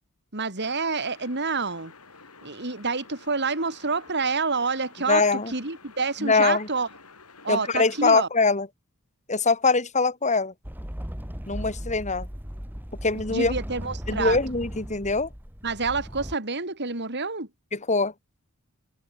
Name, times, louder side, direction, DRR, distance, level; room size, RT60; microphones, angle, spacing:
voice 1, 0.3-1.9 2.4-6.9 7.4-8.3 13.3-14.4 15.6-17.5, right 4 dB, 50° right, 3.7 m, -28 dB
sound 1, 0.6-8.3, left 4 dB, 90° left, 7.5 m, -50 dB
voice 2, 5.1-5.5 6.2-6.7 7.5-8.7 9.3-10.5 11.5-12.3 13.0-13.5 14.1-15.3 17.9-18.1, left 4 dB, 35° left, 2.7 m, -23 dB
sound 2, 10.7-16.4, equal, 10° right, 2.5 m, -37 dB
head